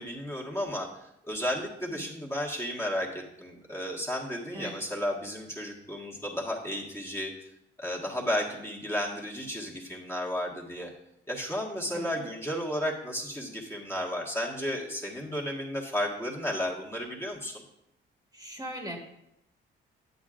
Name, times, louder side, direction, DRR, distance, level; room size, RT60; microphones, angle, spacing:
voice 1, 0.0-7.3 7.8-10.9 11.3-17.6, equal, 15° left, -2 dB, 1.6 m, -33 dB
voice 2, 18.3-19.0, right 1 dB, 20° right, 1 dB, 1.5 m, -39 dB
9.4 x 8.1 x 2.5 m, 0.81 s
cardioid pair, 90°, 20 cm